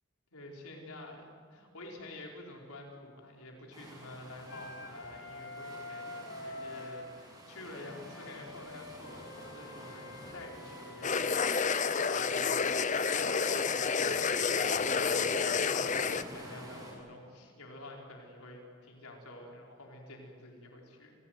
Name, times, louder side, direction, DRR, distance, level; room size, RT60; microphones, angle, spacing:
voice 1, 0.3-21.1, left 2 dB, 85° left, 0 dB, 5.0 m, -49 dB
sound 1, 3.7-16.9, equal, 15° right, 7.2 m, -49 dB
Wind instrument woodwind instrument, 4.5-7.1 7.7-12.3, left 2 dB, 55° left, 2.5 m, -47 dB
sound 2, 11.0-16.2, left 5 dB, 35° left, 0.7 m, -29 dB
29.5 x 16.5 x 9.5 m, 2.1 s
head